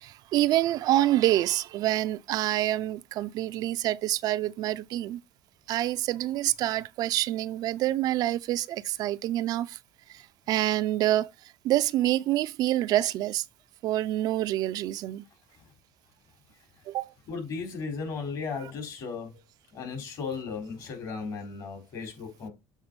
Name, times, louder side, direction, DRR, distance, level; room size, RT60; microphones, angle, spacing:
voice 1, 0.0-5.2 5.7-9.8 10.5-11.3 11.6-13.4 13.8-15.2 16.9-17.1, right 14 dB, 60° right, 0.4 m, -26 dB
voice 2, 17.3-19.4 19.7-22.5, left 5 dB, 55° left, 3.7 m, -35 dB
7.4 x 3.9 x 5.1 m
supercardioid pair, 95°, 8 cm